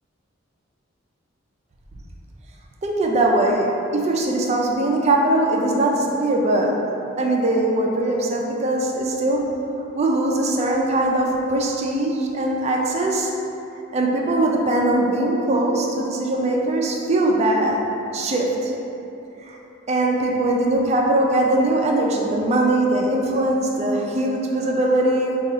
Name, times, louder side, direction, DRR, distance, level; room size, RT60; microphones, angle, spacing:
voice 1, 2.8-6.7 7.2-9.4 9.9-13.3 13.9-17.8 18.1-18.7 19.4-19.6 19.9-25.4, right 1 dB, 35° right, 0 dB, 0.3 m, -21 dB
4.8 x 2.3 x 2.7 m, 2.9 s
head